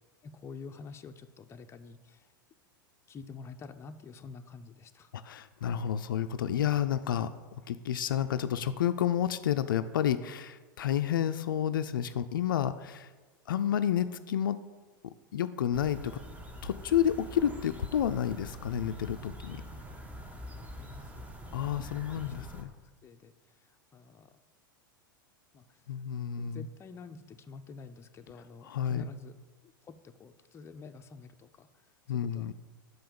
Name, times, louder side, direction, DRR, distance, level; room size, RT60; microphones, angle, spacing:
voice 1, 0.2-2.3 3.1-5.1 20.6-21.9 22.4-22.7 23.0-23.3 23.6-24.3 25.5-25.8 26.4-29.4 29.6-31.7 32.1-32.5, left 4 dB, 25° left, 7 dB, 0.5 m, -48 dB
voice 2, 5.1-7.3 7.7-13.1 13.5-14.6 15.0-16.2 16.6-19.6 21.5-22.7 25.9-26.7 28.6-29.1 32.1-32.5, left 10 dB, 75° left, 11 dB, 0.4 m, -30 dB
sound 1, 15.7-22.6, equal, 15° right, 1.0 m, -45 dB
5.6 x 5.5 x 6.8 m, 1.3 s
hypercardioid pair, 95°, 11 cm